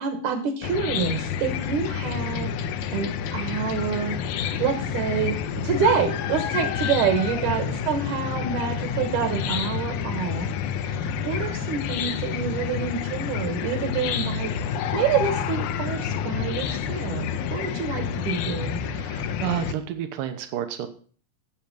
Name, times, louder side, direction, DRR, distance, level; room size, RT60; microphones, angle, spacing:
voice 1, 0.0-2.5 2.9-5.4 5.6-10.5 10.8-18.9, right 6 dB, 70° right, 6 dB, 2.6 m, -27 dB
Chicken rooster / Cricket, 0.6-19.7, left 7 dB, 75° left, 2.0 m, -29 dB
voice 2, 18.9-20.9, right 10 dB, 85° right, 8 dB, 2.7 m, -31 dB
10.5 x 7.9 x 5.2 m, 0.42 s
omnidirectional pair, 3.9 m